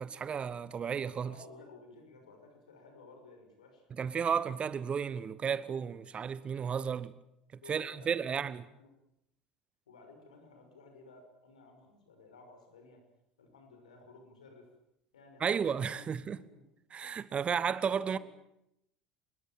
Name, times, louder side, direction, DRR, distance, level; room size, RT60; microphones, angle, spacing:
voice 1, 0.0-1.3 4.0-7.1 7.7-8.6 15.4-16.4 16.9-18.2, right 7 dB, 30° right, 1.1 m, -33 dB
voice 2, 1.3-3.8 7.6-8.3 8.6-9.0 9.9-13.0 13.4-14.7 15.1-16.6 18.0-18.2, left 3 dB, 70° left, 6.2 m, -56 dB
26.0 x 21.5 x 7.6 m
figure-of-eight pair, 70°, 4 cm